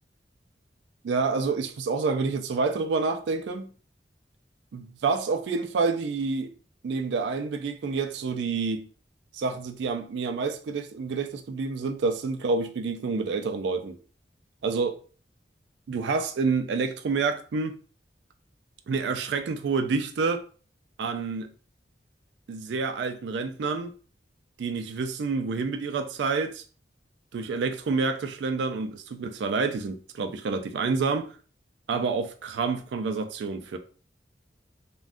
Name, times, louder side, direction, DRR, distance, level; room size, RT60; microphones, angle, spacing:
voice 1, 1.0-3.7 4.7-6.5 6.8-8.9 9.3-14.0 14.6-15.0 15.9-17.8 18.9-20.4 21.0-21.5 22.5-23.9 24.6-26.6 27.3-31.4 31.9-33.8, right 4 dB, 80° right, 0.3 m, -28 dB
2.5 x 2.2 x 3.4 m
head